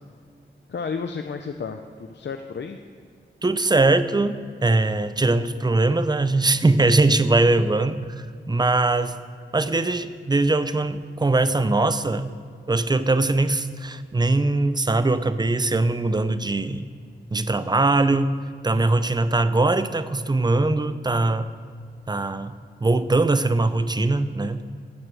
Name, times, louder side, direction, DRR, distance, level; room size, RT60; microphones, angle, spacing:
voice 1, 0.7-2.8, left 5 dB, 65° left, 6 dB, 0.6 m, -32 dB
voice 2, 3.4-9.2 9.5-12.3 12.7-16.9 17.3-18.4 18.6-21.5 22.1-24.6, right 2 dB, 20° right, 12 dB, 0.5 m, -21 dB
11.5 x 7.9 x 7.6 m, 2.1 s
wide cardioid pair, 110°, 20 cm